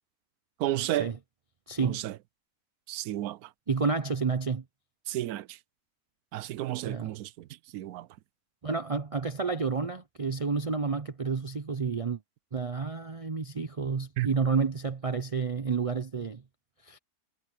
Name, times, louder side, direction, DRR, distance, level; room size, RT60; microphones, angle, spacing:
voice 1, 0.6-1.1 1.8-2.2 2.9-3.5 5.1-5.6 6.3-8.1 14.2-14.3, right 14 dB, 80° right, 1.1 m, -32 dB
voice 2, 1.7-2.0 3.7-4.6 6.8-7.1 8.6-12.2 12.5-16.4 16.9-17.0, right 5 dB, 45° right, 0.4 m, -30 dB
omnidirectional pair, 1.6 m